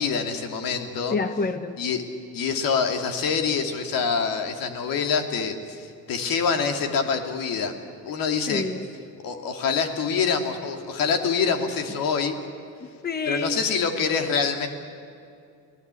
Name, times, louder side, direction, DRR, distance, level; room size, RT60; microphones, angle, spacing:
voice 1, 0.0-1.1 1.8-2.0 2.3-7.7 8.0-8.6 9.2-12.4 13.3-14.7, left 5 dB, 65° left, 5 dB, 3.0 m, -25 dB
voice 2, 1.1-1.8 8.5-8.9 12.8-13.6, left 4 dB, 25° left, 9 dB, 1.2 m, -28 dB
30.0 x 18.0 x 8.5 m, 2.5 s
supercardioid pair, 85°, 36 cm